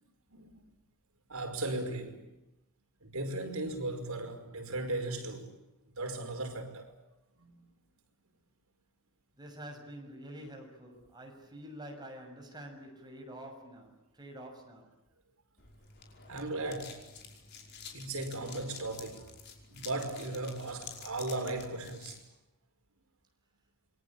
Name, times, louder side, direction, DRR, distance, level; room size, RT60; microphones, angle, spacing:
voice 1, 1.3-2.2 3.0-5.5 5.9-6.9 7.4-7.6 16.3-17.1 17.9-19.3 19.7-22.2, right 2 dB, 75° right, 5.3 m, -37 dB
voice 2, 9.4-14.9, right 1 dB, 20° right, 6.6 m, -47 dB
sound 1, 15.6-22.2, left 6 dB, 50° left, 5.3 m, -50 dB
28.0 x 23.0 x 8.7 m
head